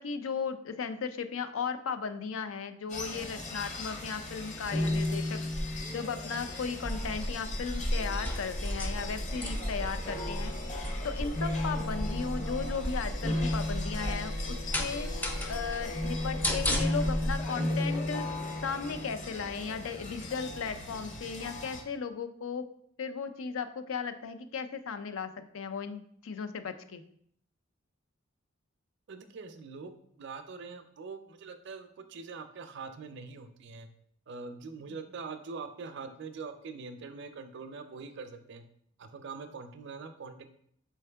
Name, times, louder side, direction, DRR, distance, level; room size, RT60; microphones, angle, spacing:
voice 1, 0.0-5.4 5.9-10.5 11.0-15.1 15.5-18.2 18.6-22.6 23.0-27.0 34.9-35.0, left 5 dB, 85° left, 10 dB, 0.4 m, -36 dB
sound 1, 2.9-21.8, left 1 dB, 40° left, 0.7 m, -36 dB
sound 2, 6.8-17.3, equal, 10° left, 0.4 m, -34 dB
voice 2, 29.1-33.9 34.3-38.6 39.0-40.5, right 4 dB, 60° right, 8 dB, 0.5 m, -43 dB
4.5 x 3.5 x 3.4 m, 0.66 s
head